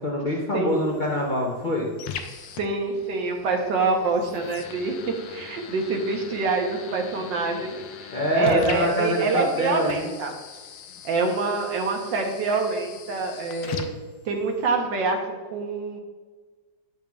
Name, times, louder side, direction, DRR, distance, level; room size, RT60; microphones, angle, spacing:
voice 1, 0.0-1.9 8.1-10.1, equal, 70° left, -2 dB, 0.4 m, -25 dB
voice 2, 0.5-0.9 2.6-7.8 8.3-10.3 11.0-13.9 14.2-16.0, right 3 dB, 80° right, 3 dB, 1.6 m, -26 dB
sound 1, 0.7-14.7, left 7 dB, 85° left, 1.3 m, -40 dB
8.8 x 6.4 x 2.3 m, 1.4 s
omnidirectional pair, 2.0 m